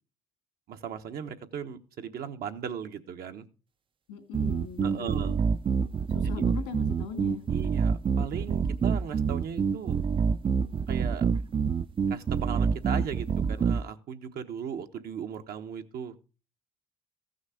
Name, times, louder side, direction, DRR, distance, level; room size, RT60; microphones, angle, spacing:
voice 1, 0.7-3.4 4.8-5.3 6.3-6.4 7.5-10.0 10.9-11.3 12.1-16.1, right 7 dB, 65° right, 6 dB, 1.1 m, -37 dB
voice 2, 4.1-5.3 6.1-7.4, left 6 dB, 90° left, 5 dB, 2.6 m, -40 dB
sound 1, 4.3-13.8, right 6 dB, 30° right, 0.5 m, -27 dB
14.5 x 6.4 x 4.9 m, 0.35 s
supercardioid pair, 75°, 17 cm